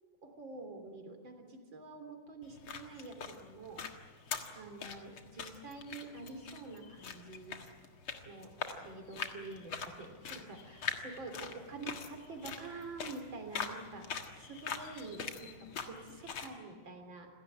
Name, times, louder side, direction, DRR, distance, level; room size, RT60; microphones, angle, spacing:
voice 1, 0.2-3.8 4.5-7.6 8.2-8.5 8.8-14.1 14.5-17.3, right 3 dB, 65° right, 5 dB, 4.1 m, -47 dB
sound 1, 2.4-16.5, left 6 dB, 90° left, 2.6 m, -44 dB
27.5 x 17.0 x 8.8 m, 1.5 s
omnidirectional pair, 2.3 m